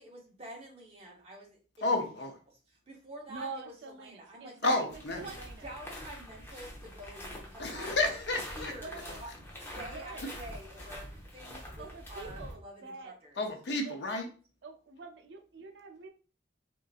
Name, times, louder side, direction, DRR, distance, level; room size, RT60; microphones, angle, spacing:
voice 1, 0.0-1.9 2.9-4.6 5.1-5.4 5.6-8.2 8.5-13.4, right 1 dB, 30° right, -2 dB, 0.9 m, -48 dB
voice 2, 1.8-2.4 4.6-5.2 7.6-8.7 13.4-14.3, left 2 dB, 70° left, 4 dB, 0.6 m, -31 dB
voice 3, 3.3-4.9 5.2-5.6 8.8-9.2 9.8-10.2 11.8-13.1 13.8-14.0 14.6-16.1, right 4 dB, 70° right, 5 dB, 0.5 m, -45 dB
sound 1, 4.9-12.5, left 1 dB, 10° left, 0.7 m, -45 dB
3.7 x 2.5 x 2.4 m, 0.37 s
head